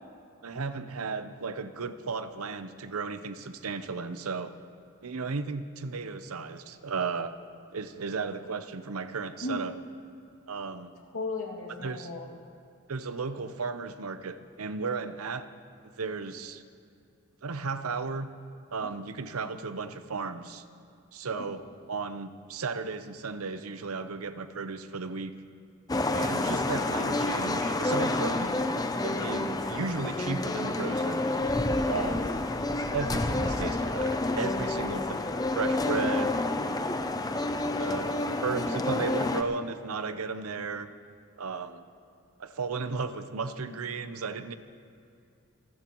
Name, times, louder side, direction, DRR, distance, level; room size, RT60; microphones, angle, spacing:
voice 1, 0.4-4.5 5.0-7.3 7.7-9.7 10.5-10.9 11.8-12.1 12.9-15.5 16.0-16.6 17.4-18.3 18.7-20.6 21.1-21.6 21.9-25.3 26.1-28.5 29.0-31.2 31.9-32.3 32.9-35.3 35.5-36.3 37.8-40.9 41.4-41.8 42.4-44.6, right 4 dB, 90° right, 11 dB, 0.7 m, -34 dB
voice 2, 11.1-12.3 18.8-18.9 21.3-21.5 28.9-29.0 31.8-32.1 36.1-36.3, left 3 dB, 85° left, -2 dB, 2.3 m, -36 dB
sound 1, 25.9-39.4, left 2 dB, 15° left, 0.5 m, -29 dB
27.5 x 13.0 x 3.0 m, 2.6 s
head